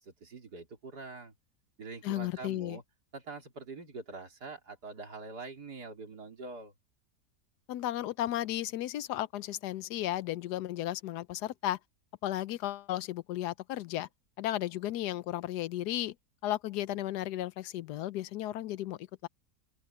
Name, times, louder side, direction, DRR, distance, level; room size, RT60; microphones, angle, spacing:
voice 1, 0.0-1.3 1.8-2.8 3.1-6.7, right 3 dB, 80° right, 4.0 m, -44 dB
voice 2, 2.0-2.8 7.7-11.8 12.2-14.1 14.4-16.1 16.4-19.3, left 13 dB, 85° left, 1.2 m, -34 dB
open air
omnidirectional pair, 1.7 m